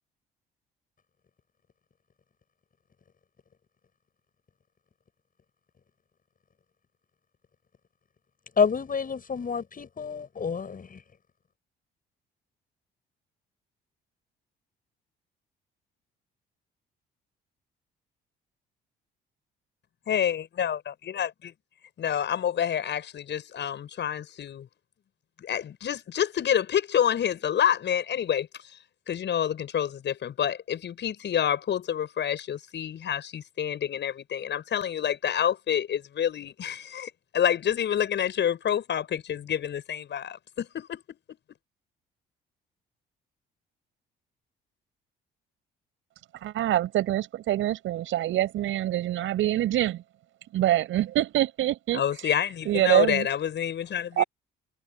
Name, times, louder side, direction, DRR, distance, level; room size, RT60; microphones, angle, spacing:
voice 1, 8.6-11.0, left 6 dB, 45° left, 7.9 m, -28 dB
voice 2, 20.1-21.3 22.0-24.7 25.4-28.5 29.1-41.2 51.9-54.2, left 9 dB, 60° left, 7.1 m, -28 dB
voice 3, 46.4-50.0 50.5-52.0 52.7-53.3 54.2-54.3, right 13 dB, 75° right, 5.6 m, -25 dB
supercardioid pair, 60°, 21 cm